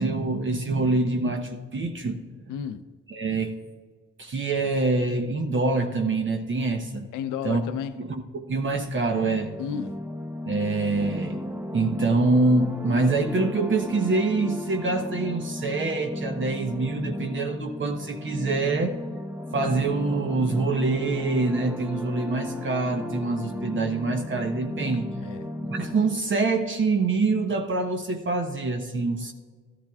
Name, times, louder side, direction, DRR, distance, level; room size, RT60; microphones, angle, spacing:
voice 1, 0.0-2.2 3.1-3.5 4.2-7.1 7.4-7.6 8.0-9.5 10.5-11.4 11.7-19.0 19.5-25.1 25.7-29.3, right 3 dB, 40° right, 0.9 m, -25 dB
voice 2, 2.5-2.8 7.1-7.9 9.6-10.0 25.2-25.5, left 8 dB, 90° left, 0.6 m, -32 dB
sound 1, 9.1-26.5, left 1 dB, 5° right, 0.7 m, -35 dB
13.5 x 13.5 x 2.4 m
cardioid pair, 90°, 30 cm